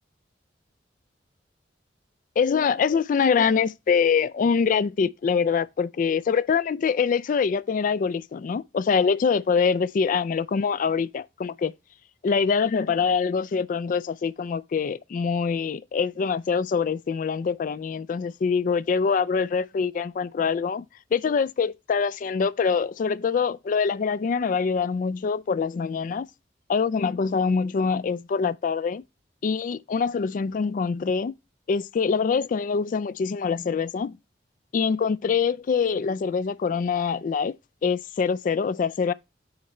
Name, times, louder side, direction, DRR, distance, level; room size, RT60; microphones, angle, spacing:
voice 1, 2.4-11.7 12.2-20.8 21.1-26.3 26.7-29.0 29.4-31.3 31.7-34.2 34.7-37.5 37.8-39.1, left 5 dB, 45° left, 0.3 m, -24 dB
8.7 x 4.4 x 4.1 m
head